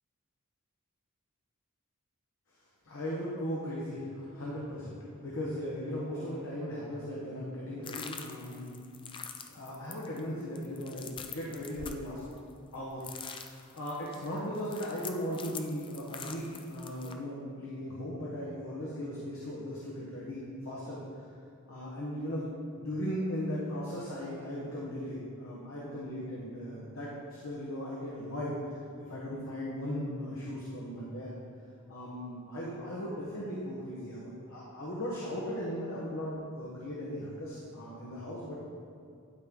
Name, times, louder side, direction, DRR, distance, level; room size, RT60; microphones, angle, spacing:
voice 1, 2.8-8.7 9.5-12.2 12.7-21.2 21.7-22.5 22.7-28.6 29.0-31.4 31.9-38.6, equal, 65° left, -6 dB, 1.2 m, -37 dB
sound 1, 7.8-12.7 13.0-17.1, left 6 dB, 25° left, 0.4 m, -45 dB
11.5 x 4.5 x 3.8 m, 2.4 s
head